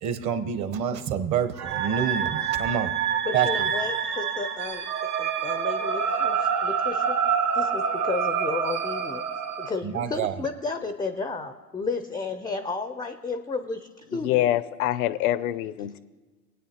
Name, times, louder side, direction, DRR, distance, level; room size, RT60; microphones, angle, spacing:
voice 1, 0.0-2.9 3.3-3.7 9.8-10.4, right 8 dB, 40° right, 0.9 m, -27 dB
sound 1, 1.6-9.7, right 7 dB, 90° right, 1.1 m, -27 dB
voice 2, 3.2-9.2 9.6-14.5, left 4 dB, 10° left, 0.3 m, -33 dB
voice 3, 14.2-16.0, left 13 dB, 75° left, 0.6 m, -25 dB
19.5 x 8.7 x 2.8 m
hypercardioid pair, 85°, 44 cm